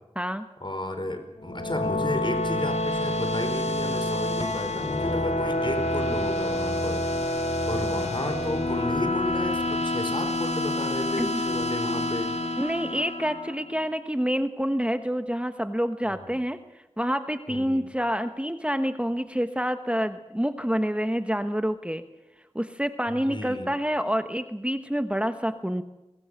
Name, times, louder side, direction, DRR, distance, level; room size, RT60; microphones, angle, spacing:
voice 1, 0.6-12.3 16.1-16.3 17.5-17.9 23.1-23.7, left 1 dB, 45° left, 7 dB, 4.8 m, -33 dB
sound 1, 1.4-13.7, left 1 dB, 80° left, 2.1 m, -28 dB
voice 2, 12.6-16.6 17.0-22.0 22.5-25.8, equal, 10° right, 8 dB, 1.2 m, -27 dB
23.0 x 20.5 x 7.7 m, 0.99 s
wide cardioid pair, 45°, 11 cm